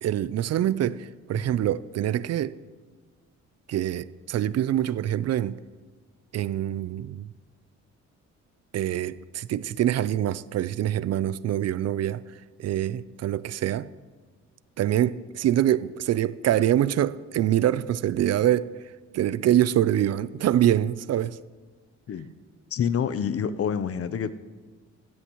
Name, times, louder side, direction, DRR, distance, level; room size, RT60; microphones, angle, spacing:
voice 1, 0.0-2.5 3.7-5.6 6.3-7.3 8.7-12.2 12.6-13.9 14.8-18.7 19.1-21.4, right 11 dB, 55° right, 0.5 m, -25 dB
voice 2, 22.7-24.3, left 7 dB, 50° left, 0.7 m, -27 dB
16.5 x 15.5 x 3.1 m
cardioid pair, 90°, 30 cm